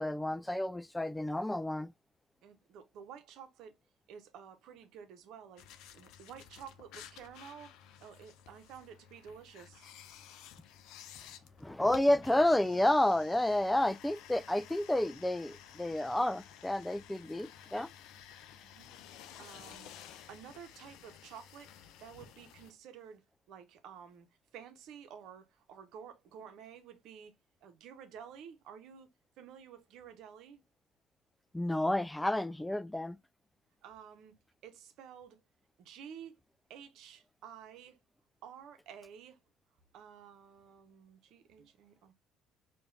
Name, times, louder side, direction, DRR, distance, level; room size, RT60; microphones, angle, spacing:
voice 1, 0.0-1.9 11.6-17.9 31.5-33.2, left 1 dB, 10° left, 0.3 m, -30 dB
voice 2, 2.4-3.8 4.1-5.7 5.9-7.7 8.0-9.9 18.6-18.9 19.4-21.7 22.0-23.2 23.5-24.3 24.5-27.3 27.6-29.1 29.4-30.6 33.8-34.4 34.6-35.4 35.8-36.4 36.7-38.0 38.4-39.4 39.9-42.1, right 8 dB, 70° right, 0.9 m, -51 dB
sound 1, 5.6-22.7, left 9 dB, 70° left, 0.5 m, -54 dB
4.8 x 2.5 x 2.6 m
supercardioid pair, 70°, 0 cm